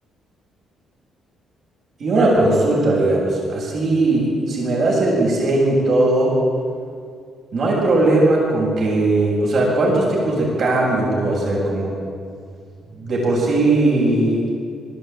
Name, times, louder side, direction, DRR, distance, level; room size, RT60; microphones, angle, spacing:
voice 1, 2.0-6.4 7.5-11.9 13.0-14.4, right 2 dB, 60° right, -4 dB, 7.4 m, -18 dB
20.0 x 14.0 x 9.2 m, 2.2 s
cardioid pair, 90°, 0 cm